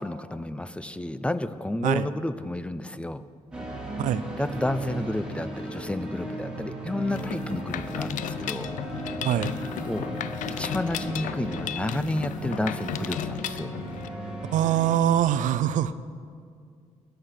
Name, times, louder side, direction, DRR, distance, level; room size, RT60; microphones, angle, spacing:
voice 1, 0.0-3.2 4.4-8.7 9.6-13.7, left 1 dB, 10° left, 12 dB, 0.5 m, -31 dB
sound 1, 3.5-15.0, right 1 dB, 5° right, 2.4 m, -36 dB
Mechanisms, 7.1-14.1, left 11 dB, 85° left, 0.4 m, -35 dB
voice 2, 14.5-15.9, right 11 dB, 90° right, 15 dB, 0.5 m, -23 dB
20.0 x 6.8 x 5.9 m, 2.2 s
cardioid pair, 95°, 13 cm